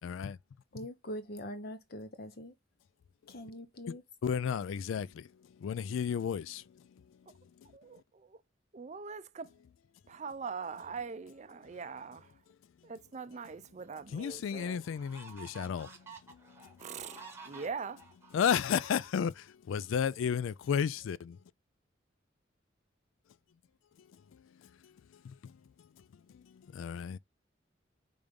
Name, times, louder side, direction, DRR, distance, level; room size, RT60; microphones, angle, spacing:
voice 1, 0.0-0.4 4.2-5.3 5.6-6.6 14.1-16.0 16.6-17.3 18.3-21.4 24.8-24.9 25.2-25.5 26.3-27.2, left 7 dB, 85° left, 0.3 m, -33 dB
voice 2, 0.7-2.5 3.3-4.0, equal, 55° left, 1.0 m, -43 dB
voice 3, 8.7-9.5 10.1-12.3 12.8-14.8 16.8-18.0, right 5 dB, 35° right, 0.4 m, -42 dB
sound 1, 13.8-13.9 14.5-19.5, right 4 dB, 15° right, 1.1 m, -52 dB
5.2 x 3.5 x 5.2 m
head